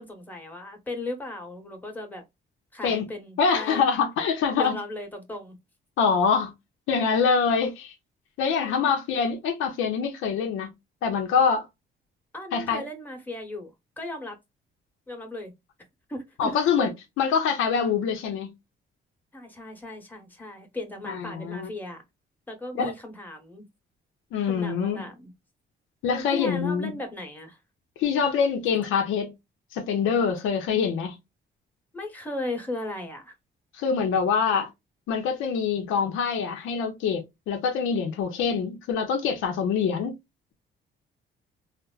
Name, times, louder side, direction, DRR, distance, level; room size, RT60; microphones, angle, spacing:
voice 1, 0.0-2.2 2.7-3.8 4.5-5.6 8.5-8.9 12.3-14.4 15.1-15.5 16.1-16.5 16.8-16.9 19.3-22.0 22.5-23.6 24.5-25.3 26.1-27.6 31.9-33.3, left 2 dB, 10° left, 1.2 m, -36 dB
voice 2, 3.4-4.8 6.0-6.5 6.9-7.9 8.4-10.7 11.0-11.7 12.5-12.8 16.4-16.9 17.2-18.5 21.1-21.7 22.7-22.9 24.3-25.0 26.0-26.9 28.0-29.3 29.7-31.2 33.7-34.7 35.1-40.1, left 6 dB, 85° left, 0.7 m, -25 dB
3.3 x 2.1 x 2.3 m
cardioid pair, 90°, 20 cm